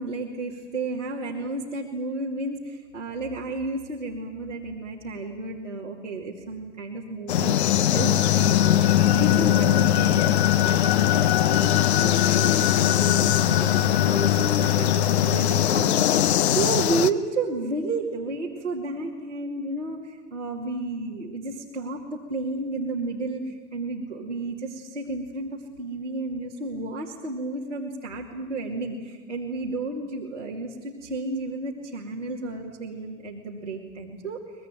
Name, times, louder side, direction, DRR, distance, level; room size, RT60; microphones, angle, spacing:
voice 1, 0.0-10.4 10.6-14.3 14.6-34.4, right 3 dB, 85° right, -5 dB, 2.7 m, -32 dB
sound 1, 7.3-17.1, left 11 dB, 65° left, 1.0 m, -21 dB
sound 2, 7.9-15.7, left 12 dB, 30° left, 2.2 m, -26 dB
23.5 x 21.5 x 9.2 m, 1.4 s
figure-of-eight pair, 75°, 35 cm